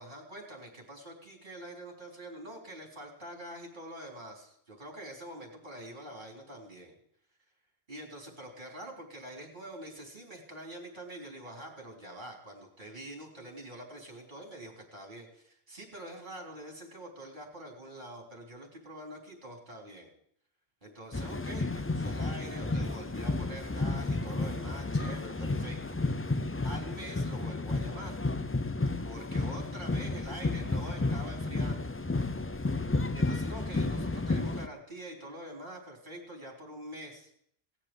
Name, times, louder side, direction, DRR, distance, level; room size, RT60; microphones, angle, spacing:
voice 1, 0.0-7.0 7.9-20.1 20.8-26.0 26.6-28.2 29.0-31.9 33.1-37.3, right 1 dB, 50° right, 0 dB, 3.6 m, -45 dB
sound 1, 21.1-34.7, left 2 dB, 20° left, 0.4 m, -32 dB
17.5 x 7.5 x 7.8 m, 0.68 s
omnidirectional pair, 1.1 m